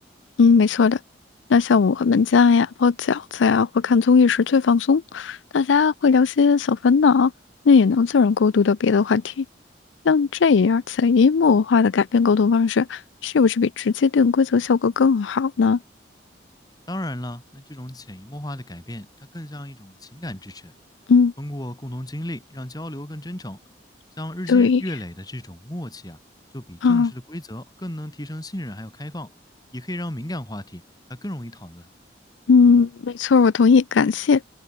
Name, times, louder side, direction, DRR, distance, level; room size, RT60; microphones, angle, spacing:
voice 1, 0.4-1.0 1.5-7.3 7.7-9.5 10.0-15.8 21.1-21.3 24.5-24.8 26.8-27.1 32.5-34.4, left 5 dB, 85° left, 0.4 m, -18 dB
voice 2, 16.9-20.7 21.4-23.6 24.2-26.2 26.5-29.3 29.7-30.8 31.1-31.9, left 1 dB, 20° left, 2.5 m, -34 dB
head